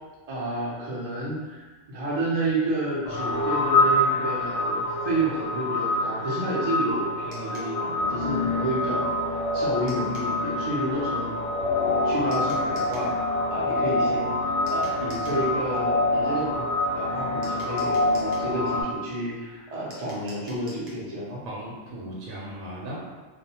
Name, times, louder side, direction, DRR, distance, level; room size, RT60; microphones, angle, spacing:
voice 1, 0.3-1.6 1.9-11.4 11.8-13.1 13.5-14.3 14.7-16.6 16.9-21.4, right 1 dB, 35° right, -7 dB, 0.6 m, -30 dB
sound 1, 3.1-18.8, left 2 dB, 70° left, 0.8 m, -26 dB
sound 2, 7.3-7.7 9.9-10.3 12.3-13.1 14.7-15.4 17.4-18.5 19.9-21.0, equal, 55° right, 0.9 m, -47 dB
voice 2, 21.5-23.0, right 1 dB, 85° right, -5 dB, 1.0 m, -37 dB
2.5 x 2.2 x 2.8 m, 1.3 s
omnidirectional pair, 1.4 m